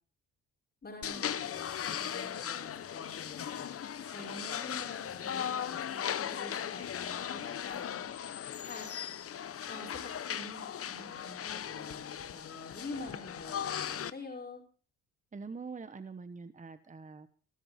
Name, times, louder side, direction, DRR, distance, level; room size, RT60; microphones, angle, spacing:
voice 1, 0.8-3.7 4.1-8.1 8.7-8.9 9.7-14.6, left 2 dB, 30° left, 1 dB, 5.7 m, -47 dB
sound 1, 1.0-14.1, left 9 dB, 50° left, 1.0 m, -38 dB
sound 2, 2.6-10.9, left 10 dB, 85° left, 2.6 m, -60 dB
voice 2, 15.3-17.3, right 4 dB, 25° right, 12 dB, 1.2 m, -44 dB
19.5 x 13.5 x 4.4 m, 0.40 s
cardioid pair, 90°, 30 cm